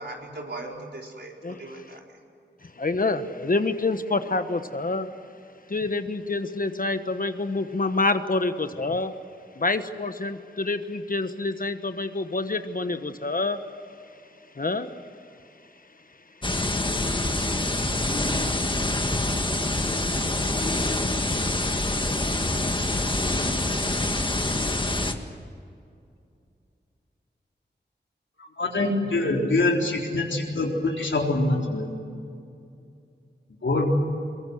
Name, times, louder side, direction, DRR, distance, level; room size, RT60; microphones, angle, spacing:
voice 1, 0.0-1.3 1.6-2.0, right 2 dB, 65° right, 0 dB, 4.5 m, -38 dB
voice 2, 1.4-1.8 2.6-5.1 5.7-9.1 9.6-13.6 14.6-14.9, left 3 dB, 50° left, 9 dB, 1.3 m, -27 dB
sound 1, 16.4-25.1, left 2 dB, 25° left, 1.7 m, -26 dB
voice 3, 28.6-31.9 33.6-33.9, left 2 dB, 80° left, 0 dB, 3.9 m, -24 dB
23.0 x 22.5 x 7.9 m, 2.5 s
wide cardioid pair, 75°, 19 cm